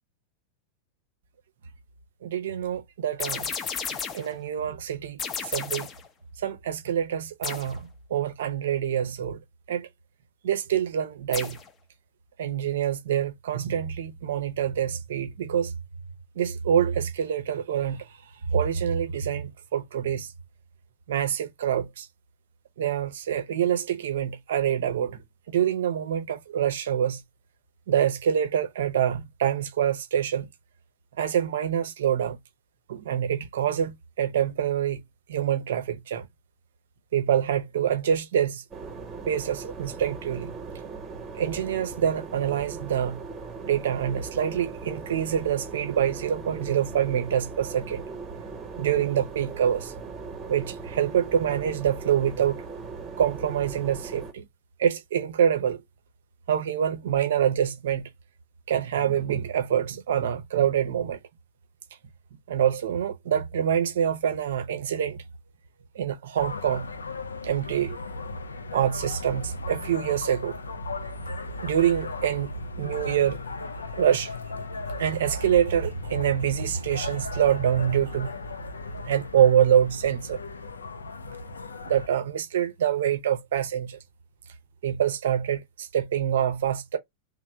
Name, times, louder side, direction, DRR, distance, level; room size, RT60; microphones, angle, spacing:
voice 1, 2.2-3.5 4.1-5.9 6.4-9.4 9.7-9.9 10.4-11.6 12.4-15.7 16.4-18.2 18.5-20.3 21.1-22.1 22.8-25.2 25.5-27.2 27.9-30.5 31.2-32.4 32.9-35.0 35.3-36.3 37.1-38.6 39.3-40.5 41.4-43.2 43.7-48.0 48.8-49.9 50.5-52.6 53.2-54.5 54.8-55.8 56.5-58.1 58.7-61.2 62.5-65.2 65.9-66.9 67.4-68.0 68.7-70.6 71.6-72.5 72.8-74.3 75.0-78.4 79.0-80.4 81.8-84.0 84.8-87.0, right 9 dB, 60° right, 0.6 m, -26 dB
sound 1, 3.2-4.3 5.2-6.1 7.4-7.8 11.3-11.7, left 6 dB, 25° left, 0.5 m, -33 dB
sound 2, 38.7-54.3, right 4 dB, 20° right, 0.9 m, -39 dB
sound 3, 66.4-82.1, left 2 dB, 75° left, 0.3 m, -37 dB
3.2 x 2.1 x 4.2 m
figure-of-eight pair, 90°, 0 cm